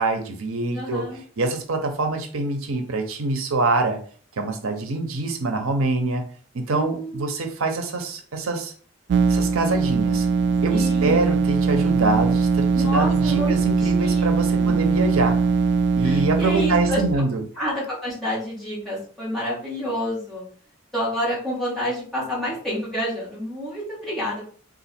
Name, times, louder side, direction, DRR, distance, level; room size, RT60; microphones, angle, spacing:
voice 1, 0.0-1.1 1.4-4.0 4.4-6.3 6.5-8.7 9.3-10.3 10.6-15.4 15.9-17.4, right 3 dB, 85° right, 6 dB, 0.7 m, -25 dB
voice 2, 0.7-1.2 6.7-7.4 10.7-11.2 12.7-14.3 14.6-14.8 16.0-17.2 17.5-20.4 20.9-24.5, equal, ahead, -8 dB, 1.9 m, -29 dB
sound 1, 9.1-17.1, right 5 dB, 55° right, 0.3 m, -21 dB
3.9 x 2.5 x 4.2 m, 0.44 s
head